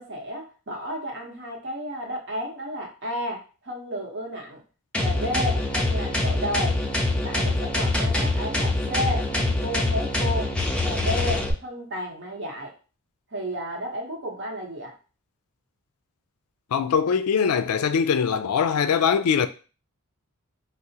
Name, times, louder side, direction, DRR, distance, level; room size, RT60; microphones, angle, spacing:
voice 1, 0.0-4.6 5.0-6.8 7.1-10.5 10.8-12.7 13.3-14.9, equal, 55° right, 0.9 m, -32 dB
sound 1, 4.9-11.5, left 2 dB, 5° left, 0.4 m, -24 dB
voice 2, 16.7-19.5, left 7 dB, 75° left, 0.3 m, -22 dB
4.7 x 2.0 x 2.7 m
head